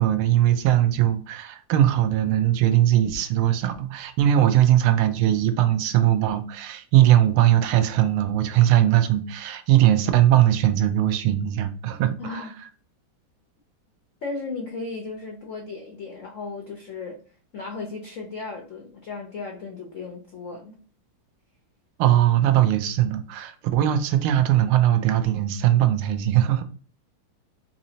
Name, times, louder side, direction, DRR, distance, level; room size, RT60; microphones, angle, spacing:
voice 1, 0.0-12.4 22.0-26.6, right 12 dB, 90° right, 8 dB, 1.5 m, -20 dB
voice 2, 12.2-12.5 14.2-17.2 17.5-20.7, left 3 dB, 90° left, 1 dB, 0.6 m, -35 dB
4.0 x 2.8 x 2.7 m, 0.41 s
omnidirectional pair, 2.3 m